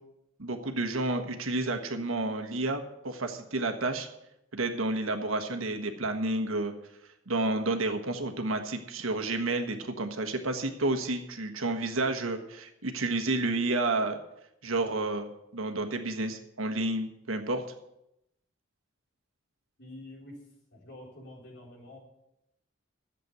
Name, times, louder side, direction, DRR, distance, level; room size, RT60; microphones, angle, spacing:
voice 1, 0.4-4.1 4.5-6.7 7.3-14.2 14.6-17.6, right 2 dB, 80° right, 5 dB, 1.4 m, -30 dB
voice 2, 19.8-20.4 20.7-22.0, left 1 dB, 55° left, -1 dB, 3.9 m, -47 dB
11.0 x 7.8 x 8.0 m, 0.83 s
head